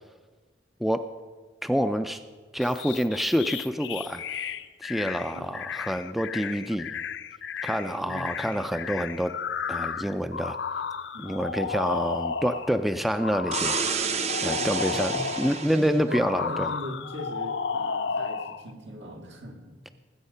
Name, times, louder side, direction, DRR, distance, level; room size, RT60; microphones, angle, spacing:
voice 1, 1.6-2.2 2.5-4.2 4.8-7.0 7.6-9.3 9.7-10.6 11.2-16.7, equal, ahead, 10 dB, 0.3 m, -27 dB
sound 1, 2.6-12.8 13.2-15.7 16.1-18.6, left 6 dB, 80° left, 0.6 m, -33 dB
voice 2, 5.3-5.7 7.8-8.6 11.1-11.8 14.4-15.4 15.7-19.9, equal, 80° right, 3 dB, 1.9 m, -40 dB
sound 2, 13.5-16.0, right 6 dB, 35° right, 0.7 m, -30 dB
19.5 x 8.1 x 5.6 m, 1.4 s
head